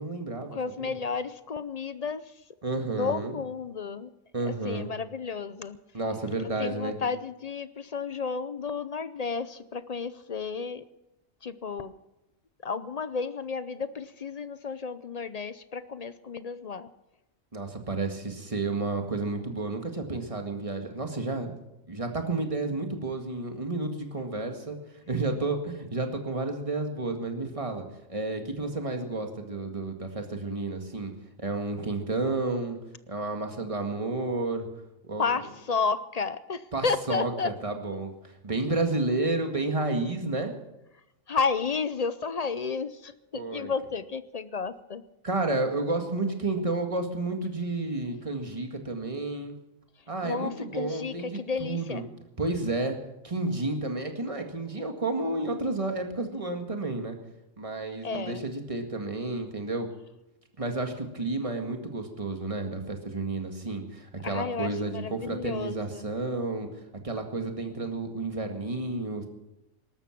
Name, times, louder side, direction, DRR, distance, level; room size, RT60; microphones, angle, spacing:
voice 1, 0.0-0.9 2.6-3.3 4.3-4.9 5.9-6.9 17.5-21.6 21.9-24.8 25.1-27.8 28.1-31.1 31.4-32.8 33.1-34.7 35.0-35.2 36.7-38.1 38.4-40.5 43.3-43.7 45.2-49.6 50.1-52.0 52.4-53.0 53.2-57.2 57.6-59.9 60.6-66.7 67.0-69.3, right 2 dB, 25° right, 4 dB, 1.9 m, -31 dB
voice 2, 0.5-2.3 2.8-4.1 4.4-5.8 6.4-10.8 11.4-11.9 12.6-16.9 35.2-37.5 41.3-45.0 50.2-52.1 58.0-58.4 64.2-66.1, left 5 dB, 45° left, 14 dB, 0.5 m, -32 dB
19.0 x 13.0 x 6.0 m, 0.93 s
omnidirectional pair, 1.3 m